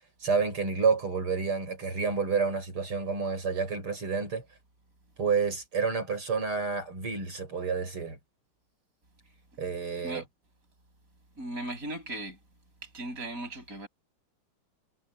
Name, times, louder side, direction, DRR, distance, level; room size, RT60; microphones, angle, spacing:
voice 1, 0.2-4.4 5.2-8.2 9.6-10.2, right 5 dB, 90° right, 7.9 m, -29 dB
voice 2, 11.4-12.4 12.8-13.9, right 1 dB, 40° right, 7.4 m, -37 dB
omnidirectional pair, 2.3 m